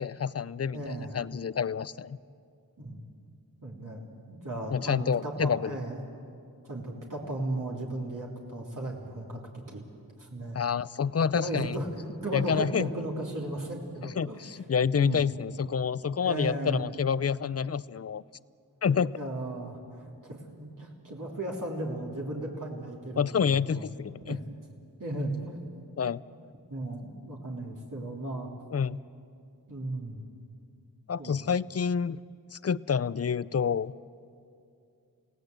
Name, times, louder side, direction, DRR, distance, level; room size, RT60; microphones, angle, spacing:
voice 1, 0.0-2.2 4.7-5.8 10.5-11.8 12.3-12.9 14.0-18.2 18.8-19.1 23.2-24.4 26.0-26.2 28.7-29.0 31.1-32.2 32.5-33.9, left 6 dB, 40° left, 18 dB, 0.5 m, -28 dB
voice 2, 0.7-1.2 2.8-3.0 3.6-6.0 6.6-9.9 10.2-10.6 11.3-14.4 14.9-15.2 16.2-16.8 19.0-23.8 24.3-24.5 25.0-25.7 26.7-28.5 29.7-30.2 31.2-31.4, right 1 dB, 55° right, -2 dB, 3.2 m, -36 dB
28.0 x 17.5 x 8.0 m, 2.4 s
wide cardioid pair, 75°, 37 cm